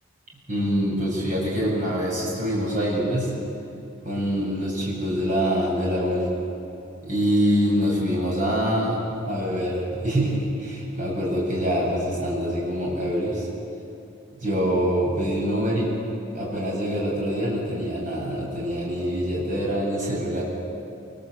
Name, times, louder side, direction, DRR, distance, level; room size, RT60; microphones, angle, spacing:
voice 1, 0.5-3.3 4.0-6.3 7.0-9.0 9.3-13.5 14.4-15.9 16.3-20.4, equal, 40° right, -4 dB, 7.9 m, -25 dB
27.5 x 21.0 x 8.3 m, 2.7 s
head